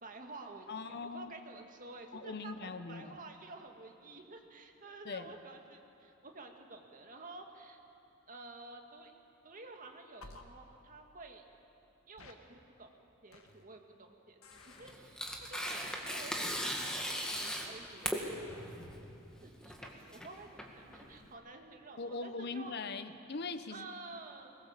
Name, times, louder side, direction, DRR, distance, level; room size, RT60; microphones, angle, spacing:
voice 1, 0.0-7.8 8.3-9.1 9.4-11.4 12.1-12.9 13.2-14.4 14.7-18.8 19.4-22.7 23.7-24.6, right 3 dB, 40° right, 3 dB, 1.9 m, -51 dB
voice 2, 0.7-1.3 2.1-3.2 5.0-5.3 22.0-23.9, left 4 dB, 50° left, 11 dB, 0.8 m, -41 dB
sound 1, 10.2-10.4 12.2-12.3 13.3-13.6 14.4-14.9 15.8-16.0, left 3 dB, 85° left, 1.7 m, -54 dB
Tearing, 14.5-21.3, equal, 5° left, 1.9 m, -39 dB
22.5 x 20.0 x 7.4 m, 2.8 s
head